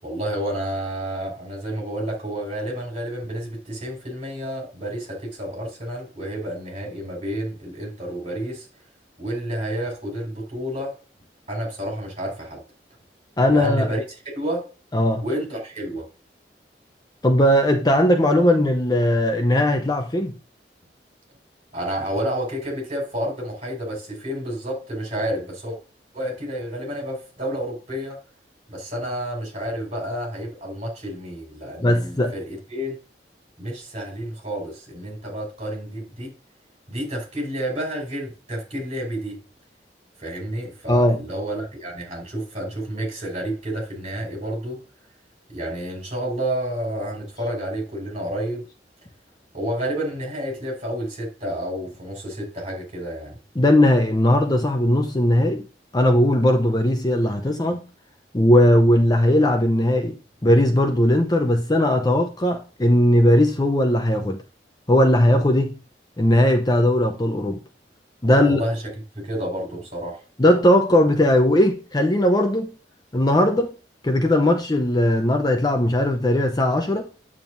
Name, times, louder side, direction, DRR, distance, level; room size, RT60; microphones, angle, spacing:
voice 1, 0.0-8.7 9.2-10.9 11.5-12.6 13.5-14.0 14.3-14.7 15.2-16.1 21.7-25.8 26.1-28.2 28.7-32.9 33.6-36.3 36.9-39.4 40.2-44.8 45.5-48.6 49.5-53.4 68.2-68.8 69.1-70.2, right 1 dB, 35° right, 5.0 m, -30 dB
voice 2, 13.4-13.9 14.9-15.2 17.2-20.4 31.8-32.3 40.9-41.2 53.6-55.7 55.9-57.8 58.3-60.2 60.4-64.4 64.9-65.8 66.2-67.6 68.2-68.6 70.4-72.7 73.1-73.7 74.0-77.1, left 1 dB, 20° left, 0.7 m, -18 dB
9.1 x 7.4 x 2.7 m
head